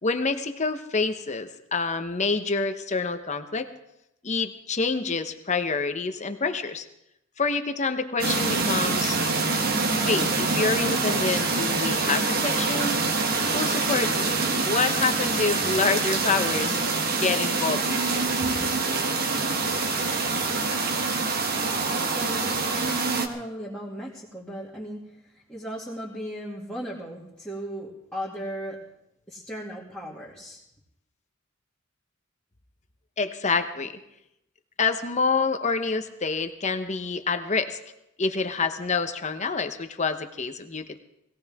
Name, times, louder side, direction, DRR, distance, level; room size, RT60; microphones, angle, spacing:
voice 1, 0.0-3.7 4.2-6.8 7.4-9.2 10.0-13.0 13.5-16.8 17.1-18.3 33.2-33.9 34.8-37.8 38.2-41.0, left 4 dB, 35° left, 8 dB, 1.0 m, -27 dB
sound 1, 8.2-23.3, right 3 dB, 45° right, 1.4 m, -25 dB
voice 2, 22.0-25.1 25.3-28.8 29.3-30.6, equal, 5° left, -8 dB, 2.4 m, -37 dB
20.5 x 17.0 x 3.6 m, 0.85 s
head